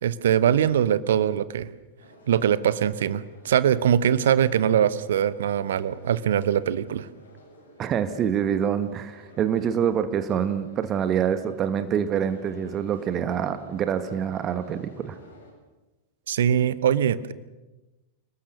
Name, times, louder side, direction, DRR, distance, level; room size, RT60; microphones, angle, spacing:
voice 1, 0.0-1.7 2.3-7.1 16.3-17.3, right 9 dB, 60° right, 16 dB, 1.1 m, -22 dB
sound 1, 2.0-15.5, left 1 dB, 70° left, 7.8 m, -52 dB
voice 2, 7.8-15.2, right 8 dB, 30° right, 10 dB, 1.5 m, -26 dB
29.0 x 20.0 x 6.7 m, 1.1 s
figure-of-eight pair, 90°, 0 cm